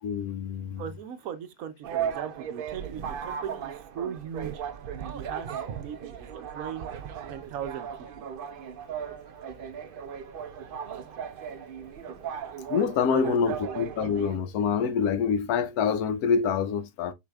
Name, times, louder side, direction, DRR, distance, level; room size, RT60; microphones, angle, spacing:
voice 1, 0.0-0.8 12.7-17.1, left 6 dB, 75° left, 1.0 m, -26 dB
voice 2, 0.8-4.6 5.1-5.5 5.8-6.9 7.3-7.9 8.2-8.3 13.1-13.6, right 9 dB, 65° right, 1.0 m, -38 dB
sound 1, 1.8-14.4, right 8 dB, 85° right, 0.4 m, -37 dB
4.9 x 4.5 x 2.2 m
omnidirectional pair, 1.7 m